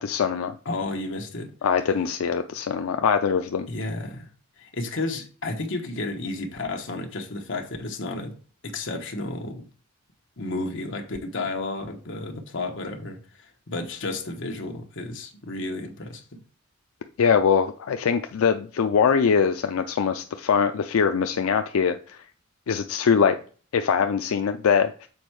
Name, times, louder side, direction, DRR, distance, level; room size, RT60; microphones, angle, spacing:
voice 1, 0.0-0.5 1.6-3.7 17.2-22.2 22.7-23.4 23.7-25.1, left 6 dB, 85° left, 0.4 m, -22 dB
voice 2, 0.6-1.5 3.7-4.3 4.6-8.4 8.6-9.6 10.4-16.2, left 2 dB, 60° left, 1.2 m, -32 dB
7.0 x 4.4 x 4.6 m
head